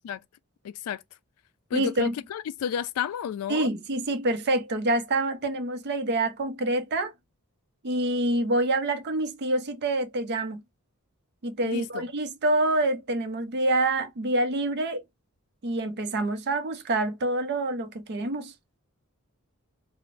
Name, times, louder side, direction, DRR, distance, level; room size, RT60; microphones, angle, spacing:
voice 1, 0.6-1.0 1.7-3.7 11.6-12.1, left 8 dB, 85° left, 0.3 m, -32 dB
voice 2, 1.7-2.1 3.5-7.1 7.8-10.6 11.4-15.0 15.6-18.5, right 2 dB, 50° right, 0.6 m, -26 dB
2.5 x 2.0 x 3.1 m
head